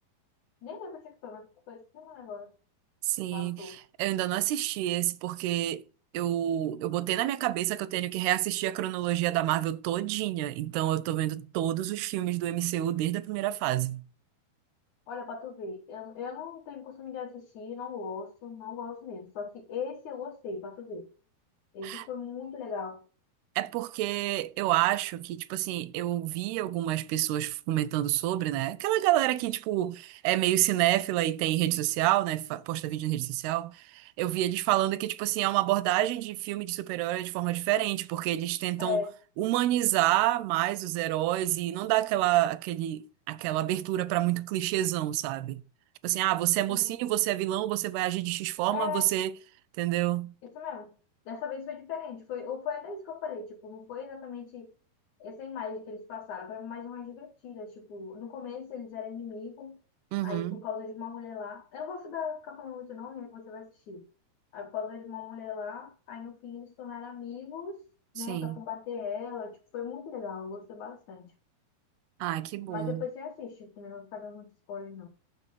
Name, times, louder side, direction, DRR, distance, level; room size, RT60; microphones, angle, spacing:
voice 1, 0.6-2.5 3.3-3.8 15.1-21.1 21.7-23.0 38.8-39.1 46.7-47.0 48.7-49.1 50.4-50.9 51.3-54.7 55.2-59.8 60.2-64.0 64.5-67.8 68.1-71.3 72.7-75.1, left 6 dB, 65° left, 2.1 m, -38 dB
voice 2, 3.0-5.8 6.1-14.0 21.8-22.1 23.6-39.0 39.4-45.6 46.0-49.3 49.8-50.3 60.1-60.6 68.2-68.6 72.2-73.0, right 14 dB, 85° right, 2.6 m, -28 dB
7.5 x 6.2 x 6.7 m
omnidirectional pair, 4.5 m